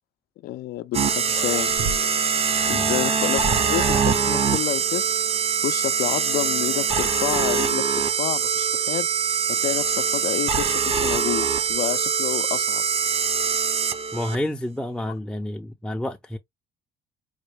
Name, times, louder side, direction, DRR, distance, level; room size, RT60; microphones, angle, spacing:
voice 1, 0.4-1.7 2.7-5.2 5.6-7.9 8.2-9.1 9.5-12.8, left 14 dB, 65° left, 0.5 m, -29 dB
sound 1, 0.8-0.9 1.3-2.4 2.6-2.7 3.6-4.3 6.1-6.4 6.7-7.0 7.3-7.4 8.2-8.3 10.1-12.2, right 4 dB, 70° right, 1.2 m, -39 dB
sound 2, 0.9-14.4, right 6 dB, 35° right, 0.7 m, -23 dB
voice 2, 2.7-3.0 14.1-16.4, left 1 dB, 5° left, 0.5 m, -29 dB
4.9 x 2.2 x 3.2 m
cardioid pair, 110°, 17 cm